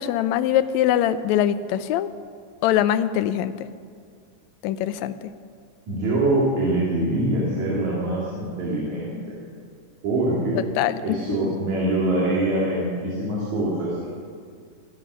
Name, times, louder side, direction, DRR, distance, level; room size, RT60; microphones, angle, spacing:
voice 1, 0.0-2.1 2.6-3.7 4.6-5.1 10.8-11.5, left 11 dB, 80° left, 12 dB, 1.9 m, -23 dB
voice 2, 5.9-9.4 10.0-10.6 11.0-14.1, right 1 dB, 70° right, -6 dB, 3.8 m, -24 dB
23.5 x 9.0 x 6.2 m, 2.1 s
omnidirectional pair, 3.4 m